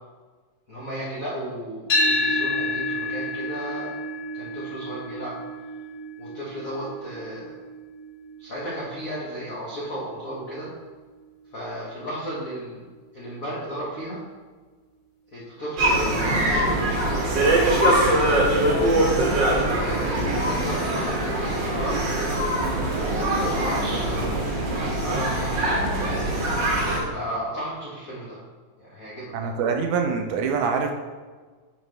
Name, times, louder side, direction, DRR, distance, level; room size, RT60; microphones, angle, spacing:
voice 1, 0.7-4.0 4.3-5.4 6.2-7.6 8.4-10.7 11.5-12.8 13.1-14.2 15.3-18.2 19.5-23.0 23.2-24.3 25.0-25.8 27.1-28.4 28.8-29.3, equal, 70° left, -8 dB, 0.8 m, -34 dB
sound 1, 1.9-10.1, left 1 dB, 50° left, 2.1 m, -29 dB
sound 2, 15.8-27.0, right 1 dB, 50° right, 1.4 m, -22 dB
voice 2, 29.3-30.9, right 5 dB, 80° right, 4 dB, 1.9 m, -24 dB
10.5 x 4.0 x 3.4 m, 1.4 s
omnidirectional pair, 3.7 m